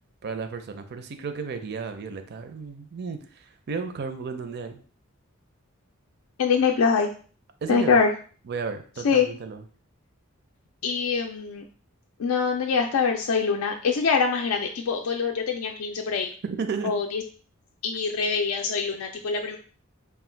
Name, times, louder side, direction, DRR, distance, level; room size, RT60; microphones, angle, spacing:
voice 1, 0.2-4.8 7.6-8.0 8.5-9.6 16.4-16.9, right 5 dB, 50° right, 8 dB, 0.4 m, -33 dB
voice 2, 6.4-7.1 7.7-8.1 9.0-9.3 10.8-11.6 12.2-16.3 16.8-17.2 17.8-19.6, left 5 dB, 80° left, 2 dB, 0.4 m, -24 dB
3.5 x 2.2 x 4.4 m, 0.42 s
head